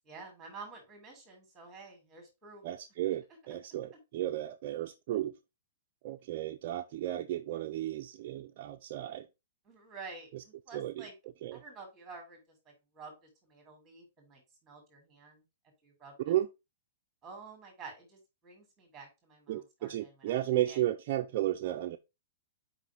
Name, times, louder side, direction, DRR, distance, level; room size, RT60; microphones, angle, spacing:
voice 1, 0.1-2.6 9.6-11.1 11.5-12.4 12.6-15.4 15.8-16.3 17.2-20.4 20.6-20.8, right 4 dB, 10° right, 2.2 m, -50 dB
voice 2, 2.6-5.3 6.0-9.3 10.7-11.1 11.4-11.6 16.3-16.5 19.5-22.0, right 13 dB, 35° right, 0.4 m, -33 dB
6.0 x 4.9 x 3.3 m
hypercardioid pair, 175°, 0 cm